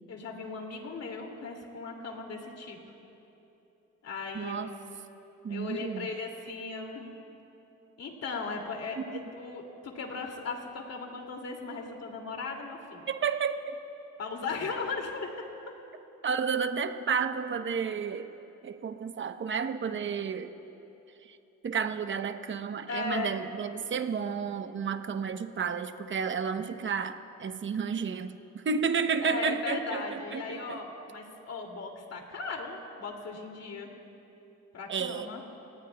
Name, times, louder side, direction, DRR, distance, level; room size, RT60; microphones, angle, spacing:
voice 1, 0.1-2.8 4.0-4.7 5.5-7.2 8.0-13.1 14.2-15.3 22.9-23.4 29.2-33.9 34.7-35.4, left 4 dB, 55° left, 2 dB, 2.5 m, -37 dB
voice 2, 4.3-4.7 5.4-6.1 9.0-9.2 13.1-13.7 16.2-18.3 18.6-20.5 21.2-21.4 21.6-30.8 34.9-35.3, right 6 dB, 40° right, 9 dB, 0.9 m, -31 dB
30.0 x 18.5 x 2.3 m, 3.0 s
cardioid pair, 90°, 30 cm